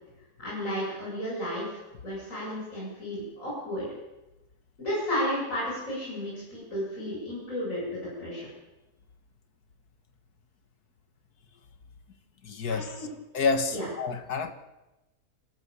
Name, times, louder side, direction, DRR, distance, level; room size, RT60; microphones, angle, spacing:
voice 1, 0.4-3.9 4.8-8.5 12.7-13.1 13.7-13.9, equal, 55° left, -6 dB, 8.1 m, -33 dB
voice 2, 12.4-13.1 13.3-14.5, left 4 dB, 75° left, 9 dB, 2.0 m, -29 dB
28.5 x 13.0 x 7.0 m, 1.0 s
omnidirectional pair, 1.7 m